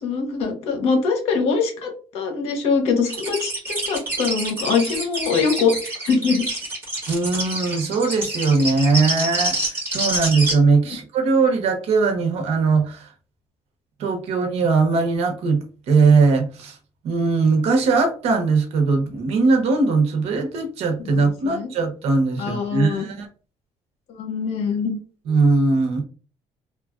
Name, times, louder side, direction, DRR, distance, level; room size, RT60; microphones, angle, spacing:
voice 1, 0.0-5.8 6.0-6.6 21.1-21.7 22.4-23.1 24.2-25.0, left 5 dB, 75° left, 5 dB, 0.8 m, -23 dB
sound 1, 3.0-10.5, right 1 dB, 20° right, 1.3 m, -27 dB
voice 2, 7.1-13.1 14.0-16.8 17.0-23.3 25.3-26.0, right 4 dB, 70° right, 4 dB, 0.8 m, -20 dB
2.9 x 2.3 x 2.3 m, 0.36 s
cardioid pair, 145°, 11 cm